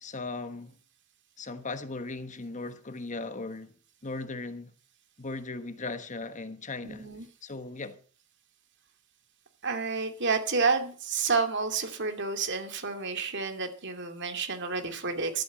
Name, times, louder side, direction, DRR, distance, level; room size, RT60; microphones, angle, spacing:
voice 1, 0.0-0.7 1.4-3.7 4.0-4.7 5.2-7.1 7.4-8.0, left 3 dB, 35° left, 1.2 m, -37 dB
voice 2, 6.8-7.3 9.6-15.4, right 4 dB, 55° right, 2.6 m, -30 dB
13.0 x 12.0 x 6.0 m
head